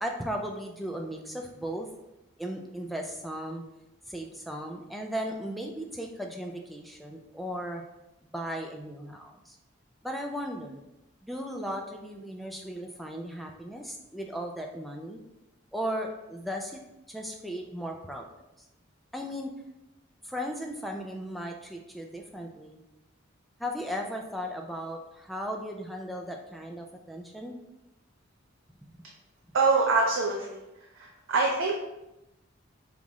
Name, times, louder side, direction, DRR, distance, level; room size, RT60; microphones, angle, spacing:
voice 1, 0.0-1.9 2.4-3.6 4.1-7.8 8.3-9.6 10.0-10.8 11.2-15.2 15.7-16.8 17.1-18.2 19.1-19.5 20.2-22.8 23.6-27.5, equal, ahead, 2 dB, 0.3 m, -36 dB
voice 2, 29.5-30.6 31.3-31.7, right 3 dB, 80° right, -1 dB, 0.5 m, -23 dB
5.3 x 2.4 x 3.0 m, 0.93 s
head